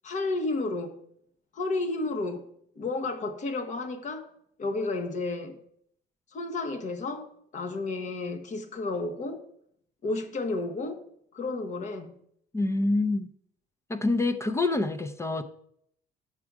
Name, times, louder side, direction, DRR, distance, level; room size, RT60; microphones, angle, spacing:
voice 1, 0.0-1.0 1.5-2.5 2.8-4.3 4.6-5.6 6.3-7.3 7.5-9.4 10.0-11.0 11.3-12.1, left 3 dB, 45° left, 1.2 m, -31 dB
voice 2, 12.5-13.3 13.9-15.4, left 2 dB, 15° left, 0.5 m, -26 dB
8.7 x 6.1 x 4.7 m
cardioid pair, 110°, 17 cm